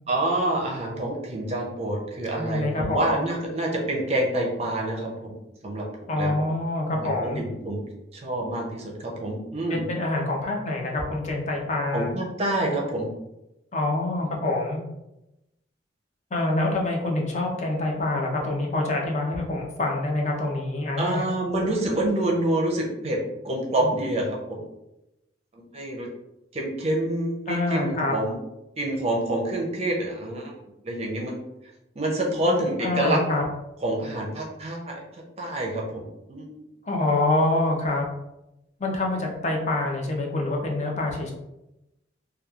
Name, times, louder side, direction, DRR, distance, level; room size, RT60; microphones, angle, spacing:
voice 1, 0.1-5.3 5.6-5.9 6.1-6.4 6.9-7.8 8.1-9.8 11.9-13.1 21.0-23.2 23.4-24.6 25.5-26.1 26.5-28.4 28.8-30.5 30.8-31.4 32.0-33.2 33.8-36.5, right 1 dB, 35° right, -1 dB, 0.5 m, -27 dB
voice 2, 2.3-3.1 6.1-7.4 9.7-12.1 13.7-14.8 16.3-21.3 27.5-28.1 32.8-33.4 36.8-38.1 38.8-41.3, left 2 dB, 35° left, 0 dB, 0.5 m, -26 dB
2.9 x 2.3 x 2.3 m, 0.92 s
head